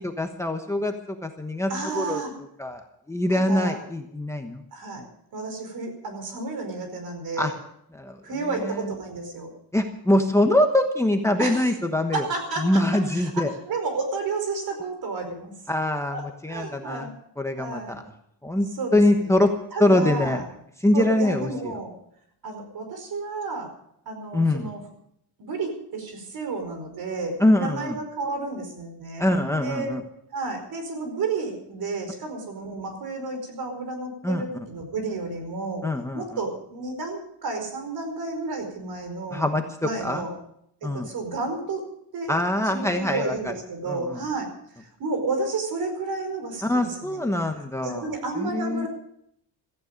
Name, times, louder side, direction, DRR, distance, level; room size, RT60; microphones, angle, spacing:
voice 1, 0.0-0.9 1.2-2.2 2.6-2.8 3.1-4.6 7.4-7.5 7.9-8.2 8.7-8.8 9.7-12.2 12.6-13.5 15.7-16.2 16.4-17.1 17.4-18.0 18.4-18.7 18.9-19.5 19.8-20.4 20.8-21.7 24.3-24.7 27.4-27.9 29.2-30.0 34.2-34.4 35.8-36.2 39.3-39.6 40.0-40.2 40.8-41.1 42.3-43.5 43.9-44.2 46.6-48.1 48.4-48.9, left 1 dB, 5° left, 5 dB, 1.1 m, -23 dB
voice 2, 1.7-2.3 3.3-3.8 4.7-5.0 5.3-7.6 8.2-9.5 11.4-11.7 12.1-15.5 16.1-17.1 17.6-18.0 18.8-19.3 19.7-20.5 20.9-21.9 22.4-23.7 24.0-24.8 25.4-29.9 30.3-35.9 36.1-39.4 39.8-40.3 40.8-41.8 42.1-42.4 42.6-44.5 44.8-47.2 47.8-48.9, right 3 dB, 60° right, 6 dB, 4.9 m, -31 dB
17.0 x 15.0 x 5.2 m, 0.71 s
cardioid pair, 155°, 41 cm